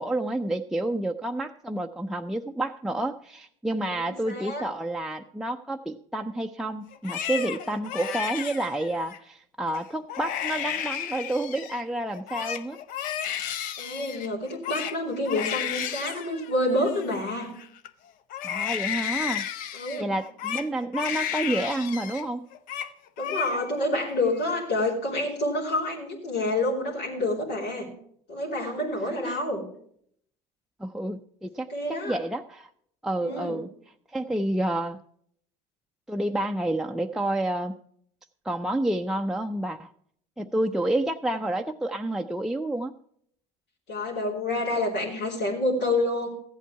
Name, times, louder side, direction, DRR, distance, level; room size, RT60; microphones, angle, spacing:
voice 1, 0.0-12.8 18.4-19.5 20.0-22.5 29.2-29.4 30.8-32.7 33.0-33.7 34.1-35.0 36.1-37.8 38.4-39.9 40.4-42.9, right 1 dB, 5° right, 3 dB, 0.4 m, -29 dB
voice 2, 3.9-4.6 13.8-17.5 19.7-20.1 23.2-27.9 28.3-29.6 31.7-32.2 33.2-33.6 43.9-46.3, left 1 dB, 85° left, -4 dB, 3.1 m, -28 dB
Crying sobbing, 6.9-9.2 9.7-9.8 10.1-11.8 12.1-17.9 18.3-22.2 22.5-22.9 23.2-23.9 24.2-24.9, left 9 dB, 60° left, 0.7 m, -33 dB
14.5 x 8.3 x 4.5 m, 0.65 s
supercardioid pair, 85°, 16 cm